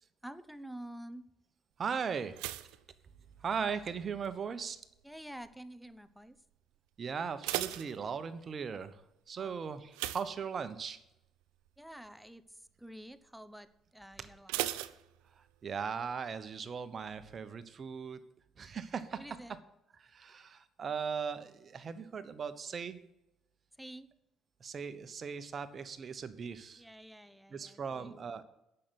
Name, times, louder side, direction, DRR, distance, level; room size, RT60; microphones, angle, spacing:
voice 1, 0.2-1.2 5.0-6.4 9.4-9.6 11.8-14.8 19.1-19.6 23.8-24.1 26.8-28.3, right 1 dB, ahead, 13 dB, 0.8 m, -49 dB
voice 2, 1.8-2.4 3.4-4.8 7.0-9.0 9.3-11.0 15.6-18.2 18.6-19.2 20.0-23.0 24.6-26.8 27.5-28.4, right 6 dB, 45° right, 12 dB, 1.1 m, -38 dB
sound 1, 2.3-3.8 4.1-4.6 5.2-5.6 5.9-6.0 6.4-6.5 7.1-8.6 9.9-11.1 11.4-11.7 12.1-12.2 14.5-15.7 16.0-16.1, right 16 dB, 85° right, 0.5 m, -39 dB
8.4 x 6.8 x 8.0 m, 0.88 s
hypercardioid pair, 60°, 0 cm